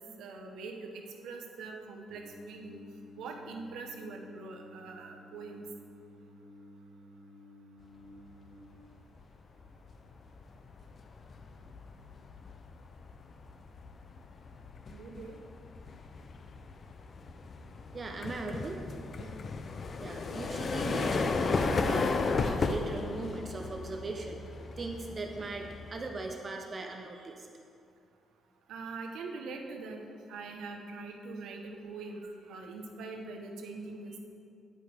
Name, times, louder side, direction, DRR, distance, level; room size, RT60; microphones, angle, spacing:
voice 1, 0.0-2.8 3.1-5.6 14.9-15.3 19.2-19.3 28.7-30.0 30.3-34.2, right 3 dB, 90° right, 3 dB, 0.9 m, -43 dB
Singing, 2.1-8.6, left 1 dB, 50° left, 1.2 m, -53 dB
sound 1, 8.9-9.2 9.6-26.3, left 4 dB, 35° left, 0.4 m, -35 dB
voice 2, 17.9-18.9 20.0-24.4 24.8-27.5, right 3 dB, 25° right, 3 dB, 0.5 m, -39 dB
10.0 x 8.4 x 3.4 m, 2.5 s
cardioid pair, 170°, 0 cm